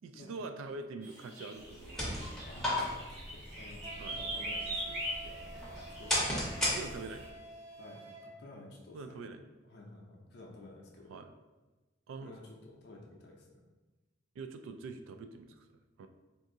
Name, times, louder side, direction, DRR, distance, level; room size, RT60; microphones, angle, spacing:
voice 1, 0.0-2.3 4.0-4.2 6.7-7.2 8.9-9.4 11.1-11.3 12.1-12.3 14.4-15.7 16.0-16.1, right 3 dB, 85° right, 8 dB, 0.3 m, -44 dB
sound 1, 1.0-7.3, equal, 55° right, 1.2 m, -42 dB
sound 2, 1.6-7.3, left 1 dB, 5° left, 0.7 m, -36 dB
voice 2, 2.5-5.5 6.0-6.7 7.8-9.2 9.6-11.2 12.2-13.5, left 2 dB, 55° left, -2 dB, 0.5 m, -52 dB
Wind instrument woodwind instrument, 3.8-8.3, right 3 dB, 30° right, 0.5 m, -49 dB
2.7 x 2.4 x 3.7 m, 1.2 s
head